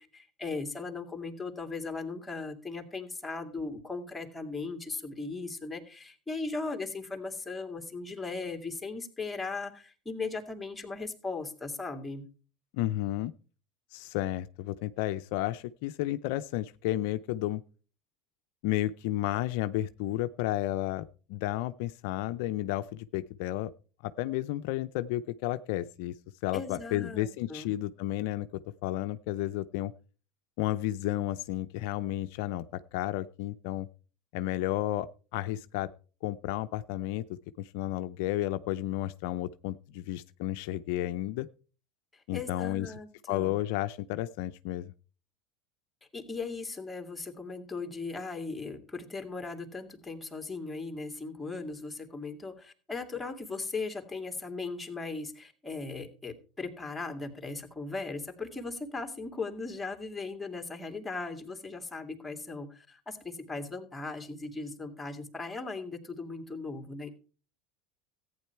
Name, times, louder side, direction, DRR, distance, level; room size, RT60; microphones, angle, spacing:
voice 1, 0.0-12.2 26.5-27.7 42.1-43.6 46.1-67.1, left 3 dB, 10° left, 4 dB, 2.5 m, -38 dB
voice 2, 12.7-13.3 13.9-17.6 18.6-23.7 24.0-26.1 26.4-29.9 30.6-33.9 34.3-35.9 36.2-41.5 42.3-42.9 43.3-44.9, left 15 dB, 70° left, 13 dB, 0.5 m, -32 dB
14.5 x 9.4 x 4.6 m, 0.39 s
supercardioid pair, 100°, 0 cm